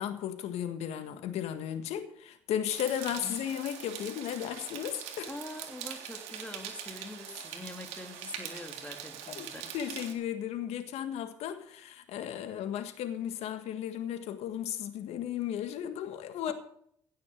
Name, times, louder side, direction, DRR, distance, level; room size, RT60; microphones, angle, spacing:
voice 1, 0.0-5.3 9.4-9.5 9.7-16.5, left 10 dB, 75° left, 1.6 m, -35 dB
sound 1, 2.7-10.1, right 9 dB, 80° right, 2.0 m, -43 dB
voice 2, 5.3-9.7 16.5-16.6, left 2 dB, 10° left, 2.8 m, -44 dB
16.0 x 6.7 x 7.1 m
hypercardioid pair, 55°, 11 cm